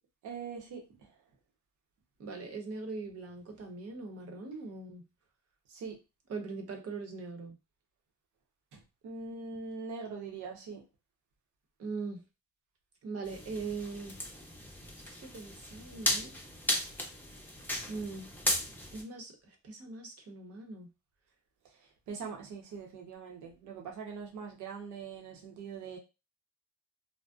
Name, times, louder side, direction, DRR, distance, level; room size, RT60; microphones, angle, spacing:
voice 1, 0.2-0.8 5.7-6.0 8.7-10.8 22.1-26.0, right 5 dB, 85° right, 0 dB, 0.8 m, -42 dB
voice 2, 2.2-5.0 6.3-7.6 11.8-12.2 13.0-14.2 15.1-16.4 17.9-18.3 18.9-20.9, right 4 dB, 50° right, 3 dB, 0.8 m, -41 dB
sound 1, 13.2-19.0, left 1 dB, 5° left, 0.6 m, -36 dB
2.5 x 2.1 x 2.3 m, 0.27 s
cardioid pair, 90°, 30 cm